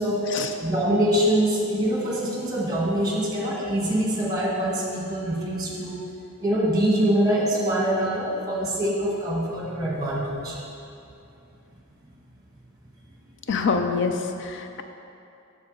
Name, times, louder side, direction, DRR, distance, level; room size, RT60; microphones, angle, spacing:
voice 1, 0.6-6.0 6.4-10.6 13.6-13.7, right 1 dB, 20° right, -4 dB, 1.6 m, -24 dB
voice 2, 13.5-14.1 14.4-14.8, left 5 dB, 55° left, 6 dB, 0.4 m, -25 dB
7.1 x 6.4 x 5.1 m, 2.7 s
head